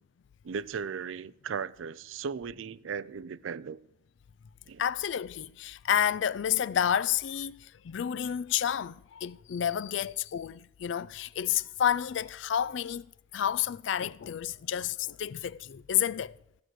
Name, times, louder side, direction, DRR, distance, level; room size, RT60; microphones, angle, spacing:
voice 1, 0.4-3.8 4.7-4.8, right 6 dB, 85° right, 0.4 m, -37 dB
voice 2, 4.8-13.0 13.3-16.4, left 9 dB, 70° left, 0.4 m, -30 dB
15.5 x 6.4 x 6.2 m
head